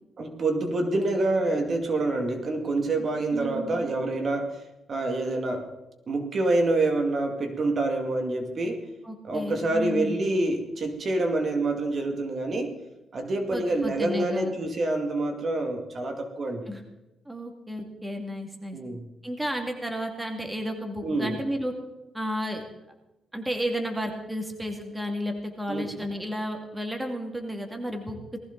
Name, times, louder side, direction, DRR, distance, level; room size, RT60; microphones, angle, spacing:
voice 1, 0.2-4.6 4.9-5.7 6.1-8.8 9.2-12.7 13.1-16.7 18.7-19.0 21.0-21.4 25.7-25.9, right 2 dB, 45° right, 4 dB, 2.2 m, -27 dB
voice 2, 3.3-3.9 9.0-10.1 13.5-14.5 16.7-16.8 17.3-18.8 19.2-21.7 22.1-22.7 23.3-28.4, equal, 10° right, 3 dB, 2.2 m, -32 dB
19.5 x 14.5 x 3.9 m, 0.99 s
cardioid pair, 120°, 0 cm